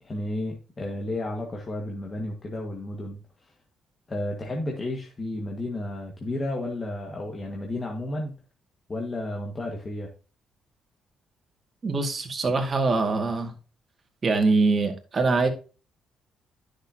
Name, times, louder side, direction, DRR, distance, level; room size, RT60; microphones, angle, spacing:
voice 1, 0.0-3.5 4.1-8.3 8.9-10.1, left 1 dB, 35° left, 1.9 m, -32 dB
voice 2, 11.8-13.5 14.2-15.5, right 3 dB, 40° right, 2.2 m, -23 dB
10.0 x 6.6 x 2.9 m
supercardioid pair, 70°, 0 cm